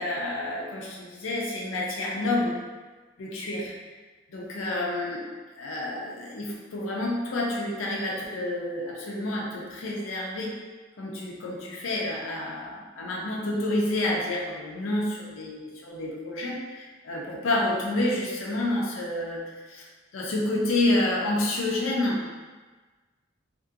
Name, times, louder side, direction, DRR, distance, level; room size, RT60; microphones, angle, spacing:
voice 1, 0.0-2.6 3.2-3.7 4.3-5.3 5.5-10.5 11.0-19.4 19.7-22.2, left 1 dB, 75° left, -3 dB, 0.5 m, -29 dB
2.9 x 2.6 x 2.5 m, 1.3 s
head